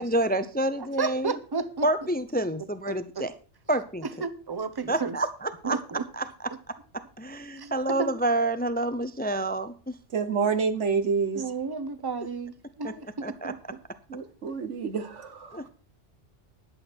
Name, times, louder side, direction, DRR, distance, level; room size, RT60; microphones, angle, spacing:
voice 1, 0.0-1.4 1.8-3.3 3.7-4.1 4.9-5.8 6.1-6.5 7.2-9.9 12.8-12.9 13.2-13.5 15.5-15.7, right 1 dB, 10° left, 12 dB, 0.5 m, -28 dB
voice 2, 1.0-1.9 2.9-3.2 4.2-5.2 5.6-6.0 7.6-7.7 8.0-8.1 11.3-13.6, right 4 dB, 20° right, 12 dB, 0.9 m, -32 dB
voice 3, 10.1-11.5 14.1-15.7, right 5 dB, 85° right, 9 dB, 1.6 m, -28 dB
11.5 x 7.9 x 6.1 m, 0.38 s
omnidirectional pair, 1.2 m